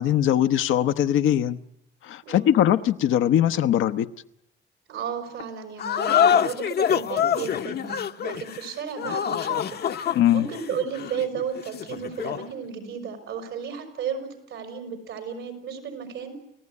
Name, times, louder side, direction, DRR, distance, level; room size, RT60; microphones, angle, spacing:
voice 1, 0.0-1.6 2.0-4.1 10.1-10.5, left 11 dB, 85° left, 1.0 m, -21 dB
voice 2, 2.2-2.6 4.9-9.8 10.3-16.3, right 7 dB, 80° right, 5.6 m, -33 dB
sound 1, 5.8-12.5, left 8 dB, 55° left, 0.9 m, -25 dB
30.0 x 15.5 x 9.7 m
cardioid pair, 90°, 20 cm